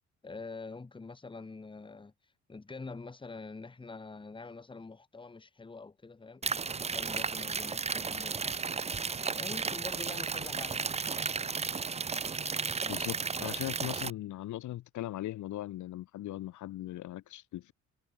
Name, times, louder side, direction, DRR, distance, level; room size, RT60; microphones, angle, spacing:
voice 1, 0.2-2.1 2.5-10.8 12.8-13.0, left 3 dB, 15° left, 1.2 m, -46 dB
sound 1, 6.4-14.1, right 5 dB, 20° right, 0.6 m, -34 dB
voice 2, 12.9-17.7, left 14 dB, 75° left, 1.1 m, -39 dB
cardioid pair, 90°, 30 cm